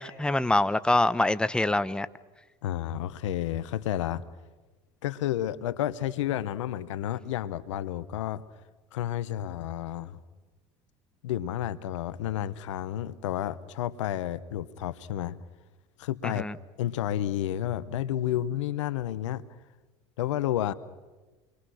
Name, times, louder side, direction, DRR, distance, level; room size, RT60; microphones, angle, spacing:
voice 1, 0.0-2.1 16.2-16.5, left 2 dB, 5° left, 14 dB, 0.9 m, -25 dB
voice 2, 2.6-4.2 5.0-8.4 8.9-10.2 11.2-15.4 16.0-16.5 16.8-19.4 20.2-20.7, left 12 dB, 85° left, 16 dB, 1.0 m, -31 dB
28.5 x 23.0 x 6.4 m, 1.2 s
hypercardioid pair, 85°, 15 cm